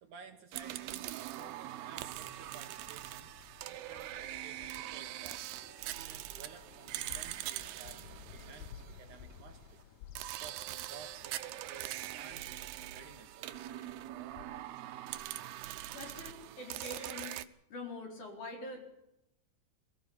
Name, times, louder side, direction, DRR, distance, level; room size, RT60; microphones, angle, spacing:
voice 1, 0.0-3.3 3.6-9.8 10.4-13.8, right 6 dB, 65° right, 5 dB, 2.3 m, -55 dB
sound 1, 0.5-9.4 10.2-17.4, right 14 dB, 80° right, 2.9 m, -43 dB
Bird vocalization bird call bird song, 2.2-15.4, left 8 dB, 85° left, 3.0 m, -56 dB
sound 2, 4.2-9.7, right 2 dB, 20° right, 3.7 m, -62 dB
voice 2, 15.5-17.4 17.7-18.8, left 2 dB, 50° left, 1 dB, 5.7 m, -45 dB
22.5 x 16.5 x 7.2 m, 0.85 s
omnidirectional pair, 4.6 m